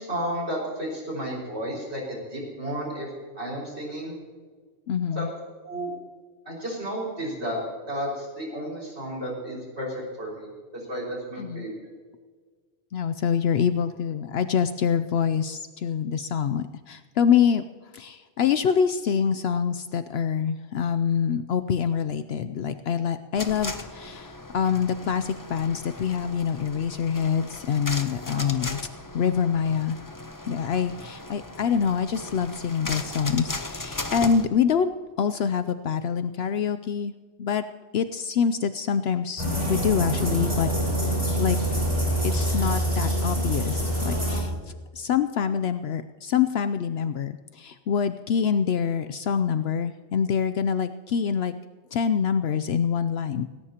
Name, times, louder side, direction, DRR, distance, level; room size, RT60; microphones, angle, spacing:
voice 1, 0.0-3.1 3.4-4.2 5.2-5.3 5.6-5.9 6.5-11.7 28.3-28.5, equal, 70° right, -1 dB, 5.6 m, -32 dB
voice 2, 4.9-5.3 11.4-11.7 12.9-17.6 17.9-28.8 29.1-30.0 30.5-34.9 35.2-37.1 37.4-37.6 37.9-40.7 41.0-41.6 42.2-44.5 44.9-51.5 51.9-53.5, left 7 dB, 70° left, 11 dB, 0.8 m, -25 dB
sound 1, 23.3-34.5, left 2 dB, 20° left, 0.8 m, -37 dB
sound 2, 39.4-44.4, right 1 dB, 40° right, 5.5 m, -25 dB
18.0 x 17.0 x 2.9 m, 1.5 s
omnidirectional pair, 1.1 m